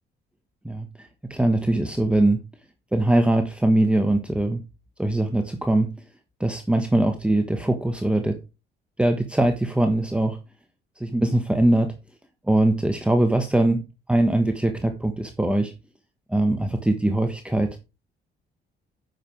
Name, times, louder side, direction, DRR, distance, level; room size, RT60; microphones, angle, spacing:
voice 1, 0.6-2.4 2.9-4.6 5.0-5.9 6.4-8.4 9.0-10.4 11.0-11.9 12.5-13.8 14.1-15.7 16.3-17.8, right 1 dB, 5° right, 6 dB, 1.3 m, -22 dB
9.2 x 6.5 x 4.6 m, 0.29 s
cardioid pair, 90°, 20 cm